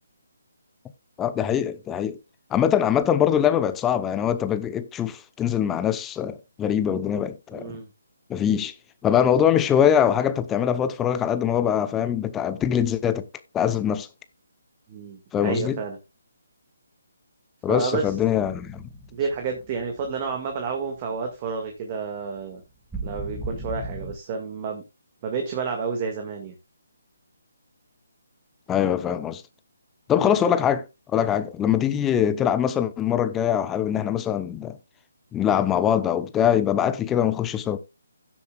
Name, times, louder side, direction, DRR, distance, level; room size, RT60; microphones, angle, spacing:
voice 1, 1.2-2.2 2.5-7.8 8.3-8.7 9.0-13.3 13.5-14.1 15.3-15.8 17.6-18.9 28.7-29.4 30.1-34.8 35.3-37.8, left 9 dB, 10° left, 0.7 m, -23 dB
voice 2, 7.5-7.9 14.9-16.0 17.7-18.1 19.1-22.6 23.0-24.8 25.2-26.5 30.2-30.4, right 5 dB, 30° right, 1.8 m, -30 dB
sound 1, 18.1-20.9 21.2-21.4 22.9-24.2, right 2 dB, 10° right, 1.8 m, -37 dB
16.5 x 7.2 x 2.3 m
figure-of-eight pair, 150°, 0 cm